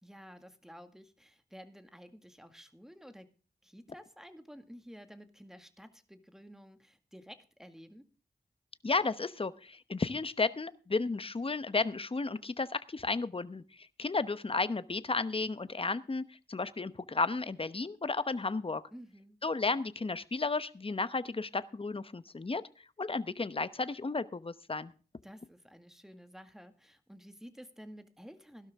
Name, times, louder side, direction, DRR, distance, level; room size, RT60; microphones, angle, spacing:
voice 1, 0.0-3.3 3.6-8.1 18.9-19.4 25.2-28.7, equal, 5° right, 8 dB, 2.0 m, -52 dB
voice 2, 8.8-18.8 19.4-22.6 23.0-24.9, left 3 dB, 35° left, 14 dB, 0.9 m, -33 dB
16.0 x 12.5 x 3.6 m, 0.37 s
wide cardioid pair, 75°, 16 cm